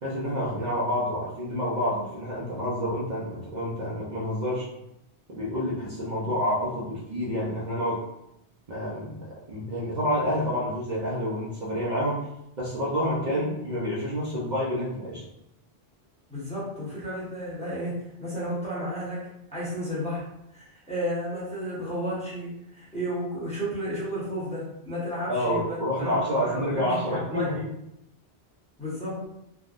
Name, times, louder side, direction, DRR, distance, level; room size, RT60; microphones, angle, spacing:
voice 1, 0.0-4.7 5.3-8.0 8.7-12.2 12.6-15.2 25.3-27.6, equal, 50° right, -7 dB, 0.7 m, -28 dB
voice 2, 13.2-13.6 16.3-20.2 20.5-27.7 28.8-29.2, equal, 5° left, -8 dB, 0.9 m, -33 dB
3.5 x 2.2 x 2.4 m, 0.82 s
omnidirectional pair, 1.1 m